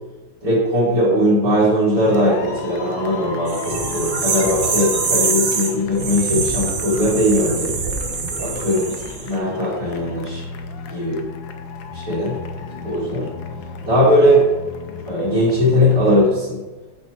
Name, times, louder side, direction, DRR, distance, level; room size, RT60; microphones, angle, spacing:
voice 1, 0.4-7.7 8.4-10.4 10.9-11.2 11.9-12.4 12.8-13.3 13.9-14.5 15.1-16.6, equal, 45° right, -10 dB, 2.7 m, -19 dB
sound 1, 2.0-16.3, left 5 dB, 75° left, 1.4 m, -34 dB
sound 2, 3.5-9.3, right 5 dB, 70° right, 0.5 m, -24 dB
8.3 x 4.5 x 4.5 m, 1.2 s
omnidirectional pair, 2.2 m